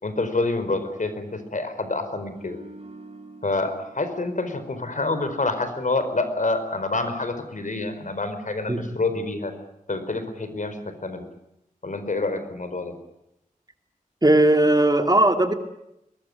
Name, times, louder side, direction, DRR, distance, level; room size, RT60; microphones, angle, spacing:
voice 1, 0.0-2.6 3.4-9.5 9.9-11.2 11.8-12.9, left 3 dB, 60° left, 9 dB, 4.7 m, -27 dB
sound 1, 2.3-5.6 5.9-6.2, right 2 dB, 45° right, 5.1 m, -47 dB
voice 2, 14.2-15.5, right 1 dB, 25° right, 6 dB, 2.7 m, -18 dB
23.0 x 21.0 x 9.7 m, 0.83 s
wide cardioid pair, 65°, 14 cm